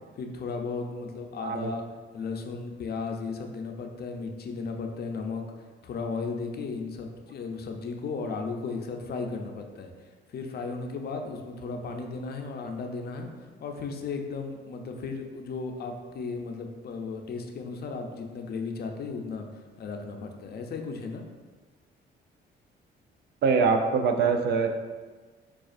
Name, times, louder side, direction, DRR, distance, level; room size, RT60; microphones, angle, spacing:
voice 1, 0.2-1.9 2.1-5.4 5.8-9.9 10.3-13.3 13.6-19.5 19.8-21.2, left 4 dB, 50° left, 4 dB, 0.5 m, -35 dB
voice 2, 23.4-24.7, right 5 dB, 60° right, 5 dB, 0.4 m, -23 dB
5.0 x 2.4 x 2.4 m, 1.4 s
cardioid pair, 90°, 20 cm